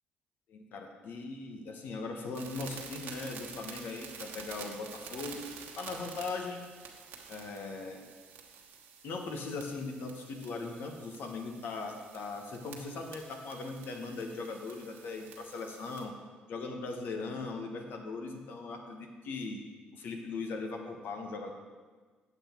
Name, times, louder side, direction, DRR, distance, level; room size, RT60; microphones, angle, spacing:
voice 1, 0.5-5.5 5.8-6.6 7.3-8.0 9.0-16.1 16.5-19.6 19.9-21.6, left 3 dB, 65° left, 3 dB, 1.3 m, -39 dB
sound 1, 2.3-16.0, right 6 dB, 75° right, 1.4 m, -49 dB
8.4 x 7.8 x 4.6 m, 1.4 s
supercardioid pair, 60°, 4 cm